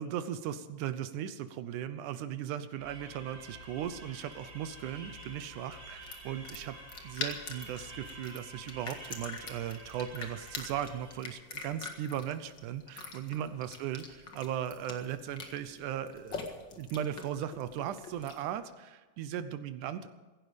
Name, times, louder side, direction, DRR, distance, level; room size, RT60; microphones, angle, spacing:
voice 1, 0.0-6.8 7.0-16.5 16.8-20.1, right 10 dB, 75° right, 11 dB, 1.8 m, -37 dB
sound 1, 2.8-11.4, right 1 dB, 45° right, 4.4 m, -49 dB
sound 2, 3.7-18.6, left 4 dB, 40° left, 1.7 m, -45 dB
16.5 x 16.0 x 5.2 m, 1.3 s
omnidirectional pair, 4.4 m